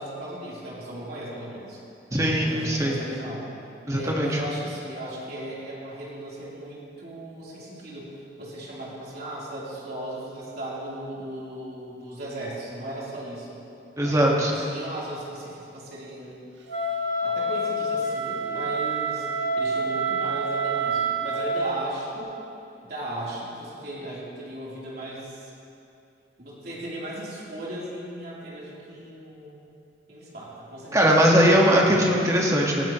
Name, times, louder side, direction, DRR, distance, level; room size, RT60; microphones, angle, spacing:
voice 1, 0.0-1.8 2.4-3.5 3.9-13.6 14.0-16.4 17.2-19.3 19.6-22.4 22.9-25.5 26.4-29.5 30.1-31.1, right 1 dB, 60° right, -7 dB, 3.6 m, -36 dB
voice 2, 2.1-3.0 3.9-4.3 14.0-14.5 30.9-32.9, equal, 20° right, -2 dB, 1.6 m, -20 dB
Wind instrument woodwind instrument, 16.7-21.7, right 2 dB, 85° right, 1.3 m, -27 dB
18.5 x 13.0 x 3.1 m, 2.6 s
head